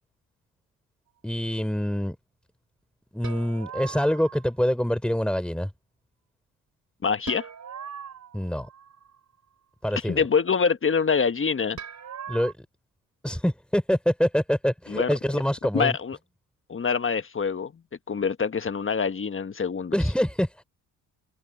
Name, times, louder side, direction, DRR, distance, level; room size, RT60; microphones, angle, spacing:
voice 1, 1.2-2.2 3.1-5.7 8.3-8.7 9.8-10.2 12.3-12.5 13.2-16.0 19.9-20.6, equal, 5° left, 3.8 m, -25 dB
sound 1, 3.2-4.6 7.3-9.2 11.8-12.5, right 7 dB, 50° right, 5.1 m, -40 dB
voice 2, 7.0-7.5 10.0-11.8 14.9-15.1 15.7-16.2 16.7-17.7 18.1-20.0, left 5 dB, 35° left, 1.4 m, -25 dB
supercardioid pair, 60°, 37 cm